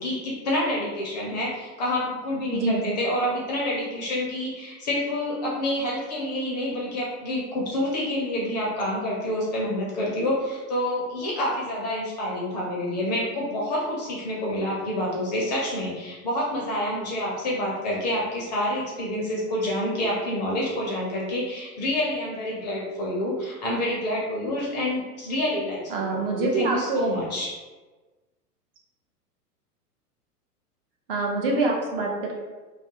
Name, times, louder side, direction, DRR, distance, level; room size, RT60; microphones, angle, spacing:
voice 1, 0.0-27.5, left 1 dB, 30° left, -4 dB, 0.4 m, -28 dB
voice 2, 2.5-3.0 25.9-27.0 31.1-32.4, right 3 dB, 40° right, -1 dB, 0.4 m, -25 dB
2.3 x 2.2 x 2.7 m, 1.3 s
figure-of-eight pair, 105°, 48 cm